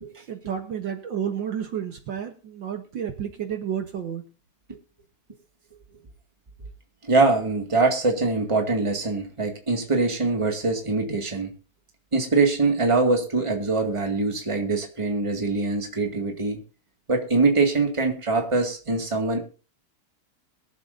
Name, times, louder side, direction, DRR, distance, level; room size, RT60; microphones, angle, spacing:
voice 1, 0.3-4.2, right 8 dB, 60° right, 1.7 m, -31 dB
voice 2, 7.0-11.5 12.1-16.6 17.1-19.4, right 3 dB, 15° right, 1.8 m, -23 dB
22.5 x 7.6 x 2.6 m
omnidirectional pair, 2.4 m